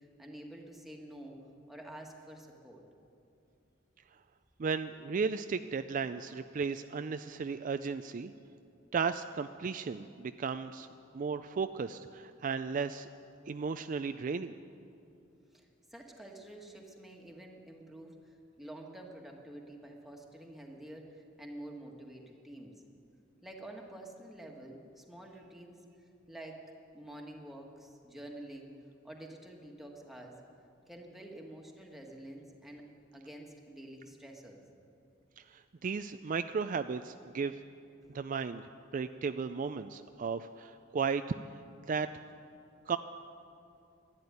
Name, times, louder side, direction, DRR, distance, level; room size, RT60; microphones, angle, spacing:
voice 1, 0.0-1.3 1.7-2.8 15.5-22.7 23.4-26.6 26.9-28.7 29.0-30.4 30.9-32.8 33.1-34.6, right 1 dB, ahead, 0 dB, 1.6 m, -48 dB
voice 2, 4.6-8.3 8.9-10.9 11.1-13.1 13.5-14.6 35.5-37.6 38.1-38.6 38.9-41.2 41.9-42.1 42.9-43.0, right 5 dB, 45° right, 10 dB, 0.4 m, -35 dB
12.0 x 12.0 x 9.6 m, 2.6 s
head